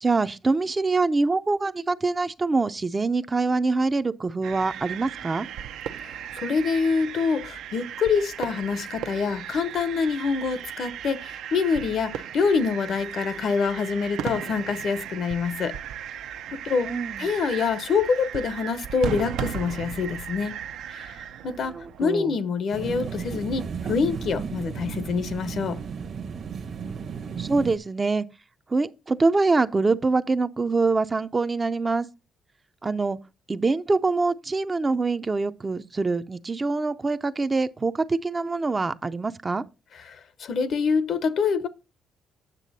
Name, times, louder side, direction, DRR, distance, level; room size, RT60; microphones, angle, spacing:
voice 1, 0.0-5.5 16.9-17.3 21.7-22.3 27.4-28.3 28.7-32.1 32.8-33.2 33.5-39.6, right 3 dB, 20° right, 0.5 m, -24 dB
sound 1, 4.4-22.1, right 9 dB, 80° right, 0.6 m, -36 dB
voice 2, 6.0-15.8 16.5-16.9 17.2-20.5 20.9-21.2 21.4-25.8 40.0-41.7, left 5 dB, 55° left, 0.8 m, -26 dB
sound 2, 22.7-27.8, right 6 dB, 50° right, 1.0 m, -34 dB
9.1 x 6.6 x 4.1 m
cardioid pair, 130°, 0 cm